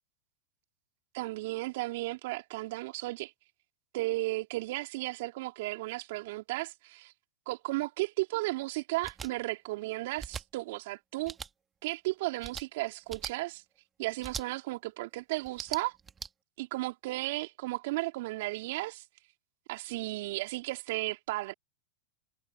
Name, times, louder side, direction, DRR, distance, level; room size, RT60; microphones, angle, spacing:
voice 1, 1.1-3.3 3.9-7.1 7.5-11.4 11.8-13.6 14.0-15.9 16.6-19.0 19.7-21.5, right 20 dB, 60° right, 2.9 m, -34 dB
sound 1, 9.0-9.3 10.2-10.4 11.2-11.5 12.4-12.6 13.1-13.3 14.2-14.4 15.4-16.3, right 6 dB, 20° right, 2.0 m, -40 dB
hypercardioid pair, 100°, 0 cm